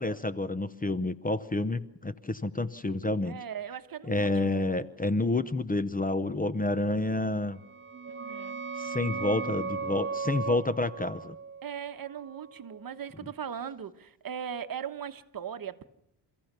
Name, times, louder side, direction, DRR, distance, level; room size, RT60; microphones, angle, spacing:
voice 1, 0.0-3.4 4.1-7.6 8.8-11.4, left 2 dB, 20° left, 0.8 m, -29 dB
voice 2, 3.2-4.7 8.1-8.6 11.6-15.9, right 8 dB, 45° right, 1.2 m, -39 dB
sound 1, 7.6-13.0, right 5 dB, 25° right, 0.8 m, -37 dB
28.5 x 15.0 x 6.8 m
cardioid pair, 105°, 46 cm